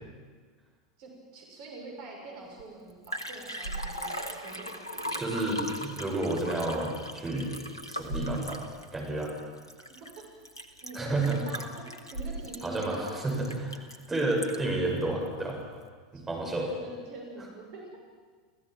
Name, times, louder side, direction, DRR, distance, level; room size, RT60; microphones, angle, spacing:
voice 1, 1.0-5.2 10.8-13.3 16.1-16.2 16.6-17.9, right 2 dB, 50° right, -1 dB, 6.3 m, -44 dB
Liquid, 2.6-2.7 2.9-14.8 15.3-15.4, equal, 85° left, 1.7 m, -38 dB
voice 2, 5.2-7.6 7.9-8.6 8.9-9.3 10.9-11.4 12.6-13.0 13.2-15.6 16.1-16.7, right 2 dB, 15° right, -2 dB, 7.1 m, -30 dB
30.0 x 16.0 x 7.6 m, 1.5 s
figure-of-eight pair, 85°, 2 cm